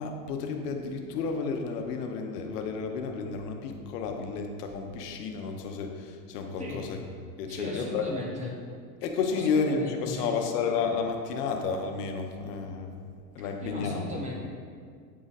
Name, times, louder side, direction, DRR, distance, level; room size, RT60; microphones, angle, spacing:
voice 1, 0.0-7.0 7.4-8.1 9.0-12.9 13.3-14.2, left 5 dB, 85° left, 4 dB, 1.0 m, -31 dB
voice 2, 7.5-8.6 9.3-10.4 13.4-14.4, left 2 dB, 15° right, -2 dB, 0.6 m, -37 dB
8.5 x 3.9 x 4.0 m, 2.1 s
supercardioid pair, 160°, 47 cm